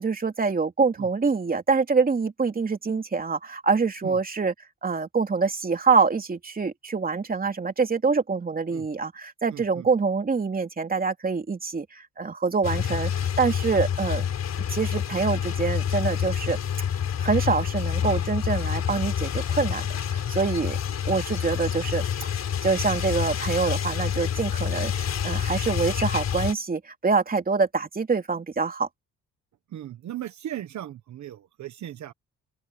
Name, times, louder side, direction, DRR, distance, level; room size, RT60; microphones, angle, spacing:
voice 1, 0.0-4.5 4.8-14.2 14.7-16.6 17.2-19.8 20.1-20.8 21.0-22.0 22.6-28.9, right 4 dB, 30° right, 3.1 m, -25 dB
voice 2, 9.5-9.9 29.7-32.1, right 12 dB, 70° right, 1.5 m, -37 dB
sound 1, 12.6-26.5, left 8 dB, 60° left, 4.4 m, -28 dB
open air
cardioid pair, 90°, 30 cm